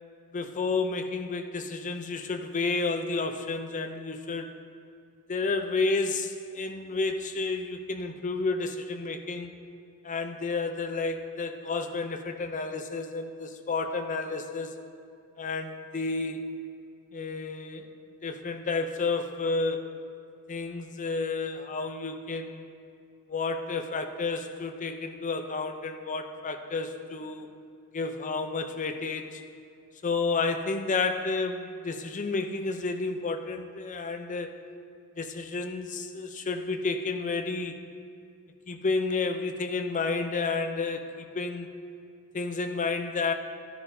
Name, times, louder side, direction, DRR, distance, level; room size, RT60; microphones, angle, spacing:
voice 1, 0.3-4.5 5.3-9.5 10.0-14.7 15.4-16.4 17.1-17.9 18.2-19.8 20.5-22.6 23.3-27.5 27.9-29.4 30.0-34.5 35.2-37.8 38.7-41.7 42.3-43.3, left 3 dB, 35° left, 6 dB, 0.6 m, -31 dB
13.0 x 10.5 x 2.7 m, 2.4 s
head